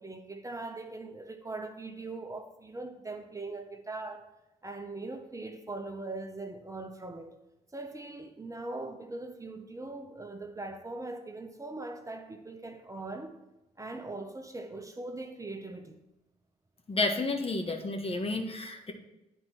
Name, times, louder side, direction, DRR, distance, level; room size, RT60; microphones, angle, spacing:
voice 1, 0.0-4.3 4.6-7.3 7.7-13.4 13.8-16.0, right 2 dB, 20° right, 0.9 m, -41 dB
voice 2, 16.9-18.9, left 3 dB, 35° left, 1.3 m, -31 dB
9.4 x 4.5 x 4.4 m
supercardioid pair, 55°, 17 cm